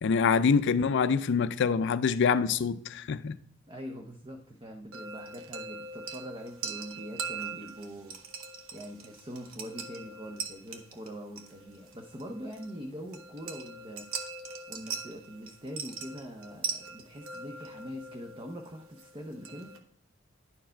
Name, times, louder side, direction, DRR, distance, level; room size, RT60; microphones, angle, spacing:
voice 1, 0.0-3.4, left 5 dB, 60° left, 0.4 m, -25 dB
voice 2, 3.7-8.2 8.7-14.1 14.7-19.7, equal, 25° right, 0.7 m, -43 dB
sound 1, 4.9-19.8, right 5 dB, 85° right, 1.0 m, -41 dB
11.0 x 4.6 x 4.4 m
head